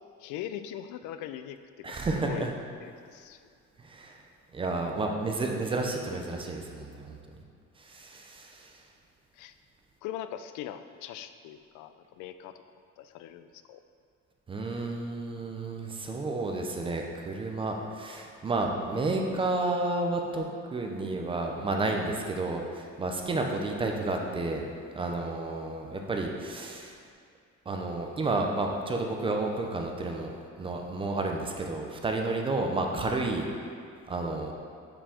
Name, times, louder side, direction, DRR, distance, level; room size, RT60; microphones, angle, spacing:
voice 1, 0.2-2.5 2.8-3.4 9.3-9.5 10.0-12.6 13.0-13.8, left 11 dB, 75° left, 11 dB, 0.4 m, -41 dB
voice 2, 1.8-2.5 3.8-4.2 4.5-7.2 7.8-8.8 14.5-20.5 20.7-24.6 24.9-27.0 27.7-30.3 30.6-33.5 34.1-34.5, right 2 dB, 15° right, 2 dB, 0.4 m, -31 dB
5.6 x 5.0 x 4.9 m, 2.3 s
cardioid pair, 165°, 31 cm